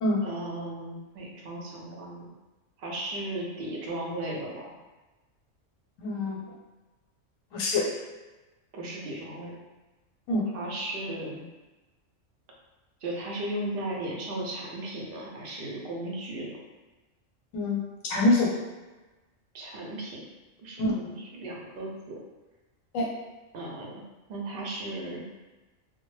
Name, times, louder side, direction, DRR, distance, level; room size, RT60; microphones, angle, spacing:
voice 1, 0.2-2.3 2.8-4.7 8.7-9.6 10.5-11.4 13.0-16.6 19.5-20.3 20.6-22.2 23.5-24.0 24.3-25.2, right 1 dB, 60° right, -2 dB, 0.6 m, -36 dB
voice 2, 6.0-6.4 7.5-7.9 10.3-10.5 17.5-18.5 20.8-21.0 22.9-23.1, left 2 dB, 85° left, -2 dB, 1.0 m, -25 dB
2.1 x 2.0 x 3.0 m, 1.2 s
omnidirectional pair, 1.3 m